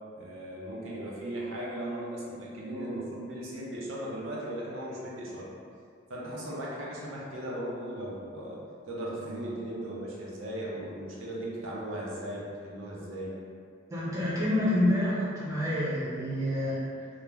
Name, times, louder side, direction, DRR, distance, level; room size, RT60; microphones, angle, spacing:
voice 1, 0.2-5.5 6.1-13.3, right 1 dB, 85° right, -5 dB, 0.5 m, -37 dB
voice 2, 13.9-16.8, left 1 dB, 15° right, -9 dB, 0.5 m, -28 dB
2.3 x 2.0 x 3.2 m, 2.3 s
head